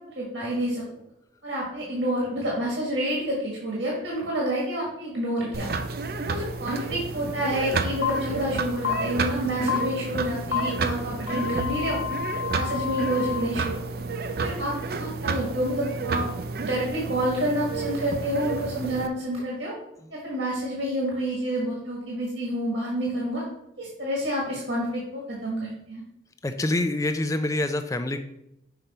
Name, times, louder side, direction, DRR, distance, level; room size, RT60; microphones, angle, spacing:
voice 1, 0.1-0.8 1.4-5.7 6.1-12.0 12.5-13.8 14.4-16.3 16.6-19.7 20.1-23.4 23.8-26.0, right 1 dB, 70° right, -4 dB, 1.7 m, -28 dB
sound 1, 5.5-19.1, right 4 dB, 55° right, 0.5 m, -31 dB
sound 2, 8.0-8.1 8.8-8.9 9.7-9.8 10.5-10.6 11.3-13.4, left 9 dB, 75° left, 1.1 m, -29 dB
voice 2, 26.4-28.2, left 2 dB, 15° left, 8 dB, 0.4 m, -26 dB
5.9 x 5.2 x 4.2 m, 0.82 s
head